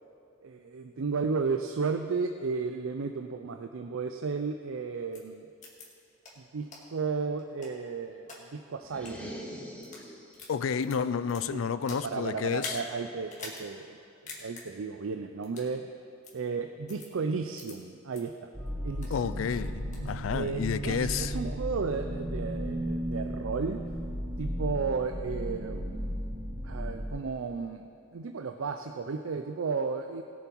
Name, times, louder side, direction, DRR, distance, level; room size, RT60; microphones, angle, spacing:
voice 1, 0.4-5.5 6.5-9.3 11.5-14.0 14.4-15.9 16.3-18.5 18.8-19.4 20.3-23.8 24.4-26.3 26.6-27.8 28.1-30.2, right 4 dB, 85° right, 0.5 m, -34 dB
sound 1, 5.1-5.2 5.6-5.8 6.2-6.3 6.7-6.8 7.4-8.4 8.9-9.1 9.7-10.0 10.3-12.1 12.5-12.8 13.3-13.6 13.9-14.0 14.3-14.6 15.4-15.7 16.2-16.3 16.9-17.1 17.6-17.7 18.1-18.2 18.7-19.2 19.5-20.1, left 3 dB, 40° left, 2.2 m, -44 dB
sound 2, 8.8-10.5, equal, 5° left, 1.7 m, -43 dB
voice 2, 10.5-12.8 19.1-21.3, left 6 dB, 80° left, 0.4 m, -30 dB
sound 3, 18.5-27.1, equal, 25° right, 2.7 m, -35 dB
19.5 x 7.3 x 4.6 m
head